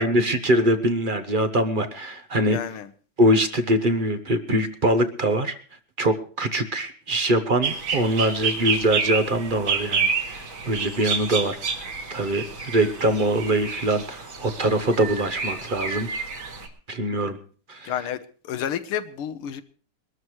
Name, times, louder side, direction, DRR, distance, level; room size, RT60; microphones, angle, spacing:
voice 1, 0.0-2.6 3.2-5.6 6.0-16.1 16.9-17.4 17.7-17.9, right 1 dB, 45° right, 0.7 m, -23 dB
voice 2, 2.5-2.9 17.8-18.2 18.4-19.6, left 9 dB, 85° left, 1.9 m, -30 dB
sound 1, 7.6-16.7, right 5 dB, 65° right, 2.9 m, -29 dB
23.0 x 13.0 x 3.2 m
omnidirectional pair, 2.4 m